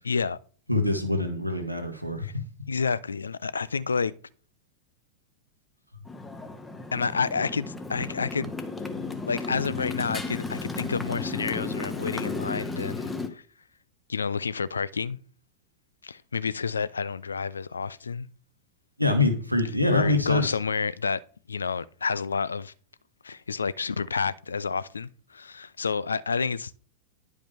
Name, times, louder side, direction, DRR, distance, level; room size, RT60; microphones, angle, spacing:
voice 1, 0.0-0.4 2.2-2.3 2.7-4.1 6.9-8.5 9.3-13.4 14.1-15.2 16.0-18.3 19.9-21.2 21.5-22.7 23.2-26.8, left 5 dB, 75° left, 0.3 m, -29 dB
voice 2, 0.7-2.4 19.0-20.6, left 2 dB, 90° right, 1.2 m, -25 dB
Motorcycle, 6.1-13.3, left 3 dB, 10° left, 0.9 m, -34 dB
10.5 x 5.0 x 3.4 m
figure-of-eight pair, 90°, 0 cm